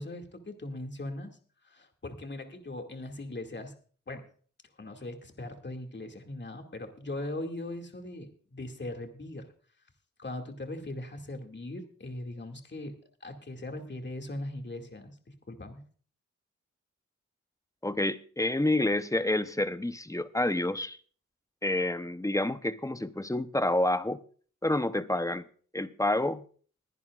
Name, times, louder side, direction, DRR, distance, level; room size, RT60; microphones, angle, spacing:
voice 1, 0.0-1.4 1.6-3.7 4.1-4.3 4.8-9.5 10.2-15.2 15.5-15.8, left 1 dB, 35° left, 2.3 m, -40 dB
voice 2, 17.8-21.0 21.6-24.2 24.6-25.4 25.7-26.4, left 1 dB, 10° left, 0.8 m, -28 dB
22.0 x 10.5 x 2.4 m
cardioid pair, 70°, 29 cm